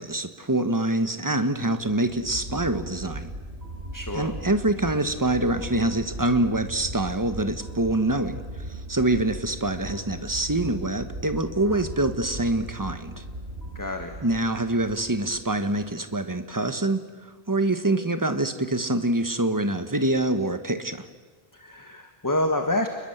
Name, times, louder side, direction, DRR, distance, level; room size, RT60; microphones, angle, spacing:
voice 1, 0.0-3.3 4.1-13.2 14.2-21.1, right 2 dB, 20° right, 9 dB, 1.3 m, -25 dB
sound 1, 1.8-15.9, right 1 dB, 90° right, 6.0 m, -38 dB
voice 2, 3.9-4.3 11.7-11.8 13.7-14.2 21.5-22.9, left 1 dB, 20° left, 5 dB, 1.5 m, -28 dB
29.0 x 21.5 x 8.1 m, 1.4 s
omnidirectional pair, 1.0 m